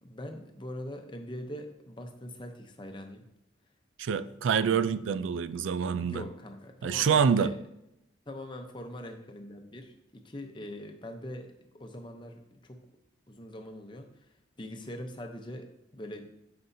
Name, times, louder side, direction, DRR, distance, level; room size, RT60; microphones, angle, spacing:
voice 1, 0.0-3.3 4.3-4.4 6.0-7.6 8.3-12.8 13.3-14.1 14.6-16.3, left 1 dB, 25° left, 0.7 m, -42 dB
voice 2, 4.0-6.2 6.8-7.5, right 6 dB, 80° right, 0.4 m, -26 dB
9.5 x 6.8 x 2.7 m
head